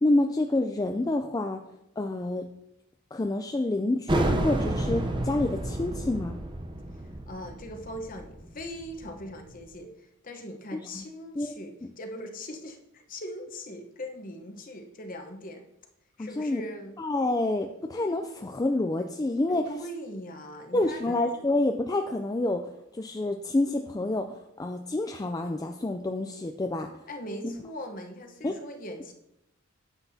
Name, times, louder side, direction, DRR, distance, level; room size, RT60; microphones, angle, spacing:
voice 1, 0.0-1.6 2.0-2.5 3.1-6.4 10.7-11.0 11.4-11.9 16.2-16.6 17.0-19.7 20.7-22.6 22.9-26.9 27.4-27.5 28.4-28.5, left 2 dB, 15° left, 4 dB, 0.3 m, -28 dB
sound 1, 4.1-9.4, right 1 dB, 20° right, 0.6 m, -30 dB
voice 2, 7.3-9.9 10.2-15.6 16.2-16.9 19.5-21.5 27.1-29.1, left 1 dB, 40° left, 4 dB, 0.9 m, -40 dB
9.7 x 8.0 x 2.7 m, 0.83 s
head